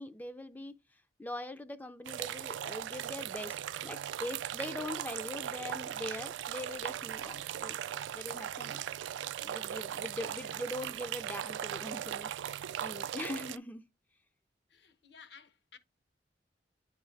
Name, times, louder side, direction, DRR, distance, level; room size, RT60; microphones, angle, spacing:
voice 1, 0.0-3.6 3.8-7.8 8.1-8.8 9.4-13.8, left 1 dB, 10° left, 0.3 m, -42 dB
sound 1, 2.0-13.6, right 10 dB, 85° right, 0.3 m, -39 dB
voice 2, 10.3-10.6 14.7-15.8, left 5 dB, 65° left, 0.8 m, -55 dB
9.5 x 3.6 x 3.2 m
head